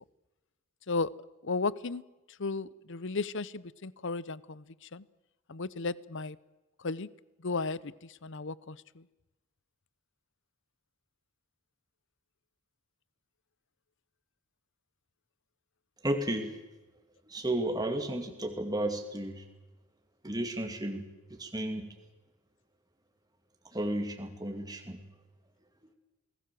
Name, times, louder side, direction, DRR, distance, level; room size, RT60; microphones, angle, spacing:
voice 1, 1.4-2.0 2.4-4.6 4.9-5.0 5.5-6.4 6.8-7.1 7.4-7.9 8.2-8.8, left 3 dB, 55° left, 19 dB, 0.8 m, -34 dB
voice 2, 16.0-16.6 17.3-19.4 20.2-21.9 23.7-25.0, right 1 dB, 15° right, 4 dB, 2.6 m, -33 dB
28.5 x 20.0 x 7.6 m, 1.1 s
head